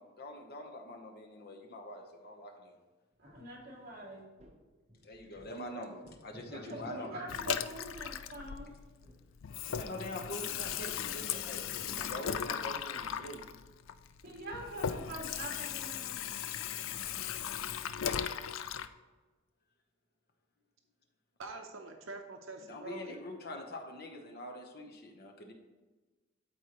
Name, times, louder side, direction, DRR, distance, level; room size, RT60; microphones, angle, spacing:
voice 1, 0.0-2.8 5.0-7.1 9.7-13.4 22.6-25.5, left 1 dB, 50° left, 3 dB, 1.0 m, -44 dB
voice 2, 3.2-4.3 6.5-8.7 14.2-16.2, right 1 dB, 50° right, -3 dB, 2.3 m, -44 dB
sound 1, 3.3-3.6 3.9-4.0 4.4-4.6 4.9-5.7 6.0-7.3 7.6-7.8 8.1-8.2 8.6-8.7 9.0-11.4 11.6-13.2, equal, 35° right, 0.9 m, -56 dB
Water tap faucet / Sink (filling or washing), 7.3-9.1 9.4-18.9, left 8 dB, 70° left, 0.4 m, -37 dB
voice 3, 21.4-23.2, right 3 dB, 75° right, 4 dB, 0.8 m, -45 dB
12.5 x 4.5 x 3.1 m, 1.3 s
head